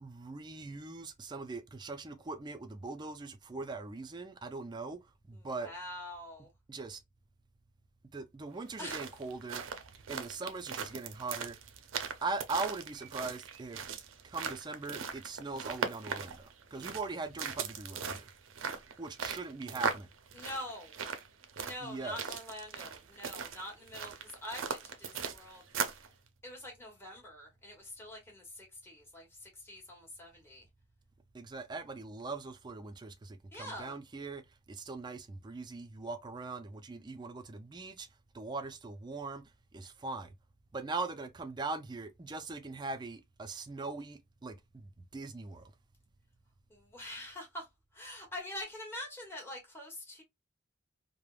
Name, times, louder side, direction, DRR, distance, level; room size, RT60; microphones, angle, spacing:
voice 1, 0.0-5.0 5.3-5.7 6.7-7.0 8.1-9.6 10.1-11.6 12.2-13.8 14.2-18.2 19.0-20.1 21.8-22.4 31.3-34.4 34.7-38.1 38.3-39.4 39.7-40.3 40.7-45.7, right 3 dB, 20° right, 0.3 m, -41 dB
voice 2, 5.3-6.5 8.8-9.1 20.3-20.9 21.6-26.0 26.4-30.6 33.5-33.9 46.7-47.7 47.9-50.2, left 1 dB, 10° left, 1.1 m, -45 dB
sound 1, 8.6-26.1, right 6 dB, 80° right, 0.5 m, -39 dB
3.2 x 2.0 x 2.3 m
head